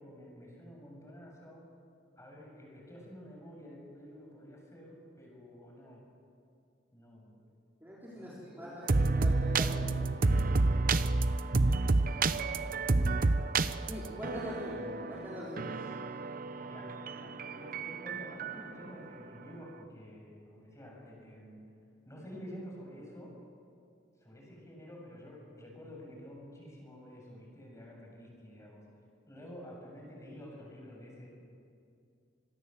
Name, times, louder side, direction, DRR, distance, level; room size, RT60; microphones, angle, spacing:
voice 1, 0.0-1.7 2.2-6.0 6.9-7.4 8.1-8.9 12.5-12.9 16.6-21.6 22.1-23.4 24.2-28.8 29.3-31.3, equal, 15° left, -1 dB, 7.3 m, -49 dB
voice 2, 7.8-10.4 13.9-15.9, equal, 10° right, -7 dB, 4.2 m, -43 dB
sound 1, 8.9-18.6, right 3 dB, 50° right, 0.8 m, -29 dB
25.5 x 21.5 x 7.8 m, 2.4 s
head